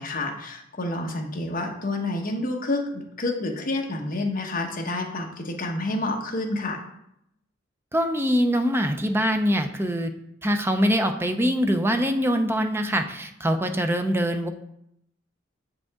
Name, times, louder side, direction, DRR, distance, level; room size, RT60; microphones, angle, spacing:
voice 1, 0.0-6.8, left 2 dB, 45° left, 1 dB, 1.2 m, -29 dB
voice 2, 7.9-10.1 10.4-14.5, equal, 10° right, 6 dB, 0.5 m, -23 dB
7.7 x 5.1 x 3.6 m, 0.77 s
head